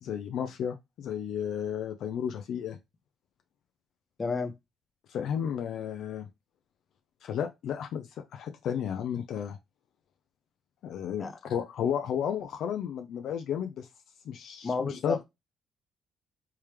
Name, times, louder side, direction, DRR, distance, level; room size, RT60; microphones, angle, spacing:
voice 1, 0.0-2.8 5.1-6.3 7.2-9.6 10.8-13.9 14.3-15.2, left 8 dB, 75° left, 0.4 m, -33 dB
voice 2, 4.2-4.5 11.2-11.3 14.6-15.2, left 4 dB, 35° left, 0.7 m, -31 dB
3.4 x 3.1 x 3.2 m
supercardioid pair, 65°, 0 cm